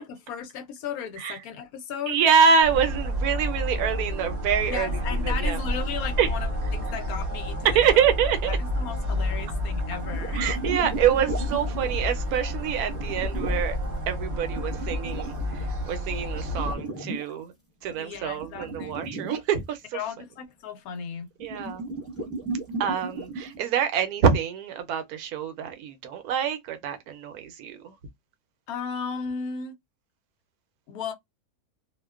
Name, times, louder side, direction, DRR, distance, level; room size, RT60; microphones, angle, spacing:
voice 1, 0.0-2.2 4.7-8.0 8.5-10.4 18.0-19.1 19.9-21.3 28.7-29.7 30.9-31.1, left 6 dB, 80° left, 1.1 m, -35 dB
voice 2, 2.1-5.6 6.2-6.3 7.6-8.6 10.3-13.8 14.1-17.5 17.8-20.0 21.4-21.9 22.8-27.9, right 7 dB, 90° right, 1.1 m, -25 dB
sound 1, 2.6-16.7, left 1 dB, 40° right, 0.7 m, -30 dB
sound 2, 10.0-13.7 14.3-17.3 17.9-19.4 21.4-23.6, right 3 dB, 10° left, 0.9 m, -35 dB
2.7 x 2.1 x 2.3 m
omnidirectional pair, 1.5 m